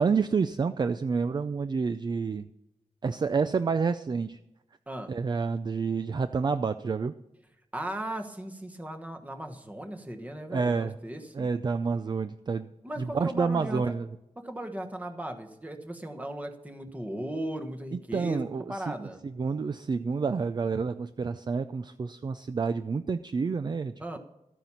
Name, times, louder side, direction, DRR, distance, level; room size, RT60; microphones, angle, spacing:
voice 1, 0.0-2.5 3.0-4.4 5.1-7.1 10.5-10.9 11.3-12.7 13.0-14.1 17.9-19.1 19.4-24.2, right 5 dB, 35° right, 11 dB, 0.4 m, -29 dB
voice 2, 7.7-11.5 12.8-13.8 14.4-19.2 24.0-24.2, right 1 dB, 10° right, 4 dB, 1.3 m, -37 dB
13.5 x 9.2 x 5.7 m, 0.91 s
wide cardioid pair, 145°, 12 cm